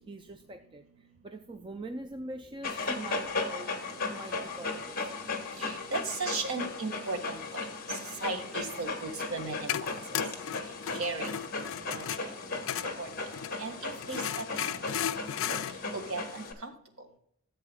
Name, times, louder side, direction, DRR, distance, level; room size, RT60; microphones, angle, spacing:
voice 1, 0.0-3.7 4.1-5.3, right 1 dB, 20° right, 7 dB, 0.4 m, -43 dB
Dog, 2.6-16.5, left 3 dB, 40° left, 1.3 m, -36 dB
voice 2, 5.6-9.9 10.9-11.3 11.8-12.0 13.0-13.1 13.6-14.8 15.9-16.7, right 3 dB, 70° right, 4 dB, 1.6 m, -36 dB
sound 1, 9.1-13.6 14.0-15.8, left 9 dB, 60° left, 0.3 m, -35 dB
14.5 x 7.9 x 2.2 m, 0.67 s
head